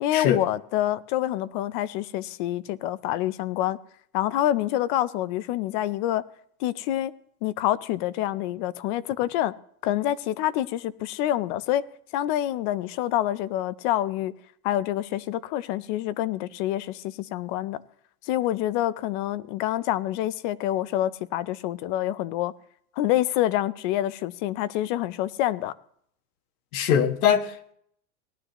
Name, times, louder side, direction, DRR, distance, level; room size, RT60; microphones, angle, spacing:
voice 1, 0.0-3.8 4.1-6.2 6.6-7.1 7.4-9.5 9.8-11.8 12.1-14.3 14.6-17.8 18.2-22.5 23.0-25.7, left 13 dB, 35° left, 0.4 m, -27 dB
voice 2, 26.7-27.7, left 8 dB, 75° left, 1.4 m, -22 dB
18.5 x 11.5 x 3.0 m
supercardioid pair, 160°, 43 cm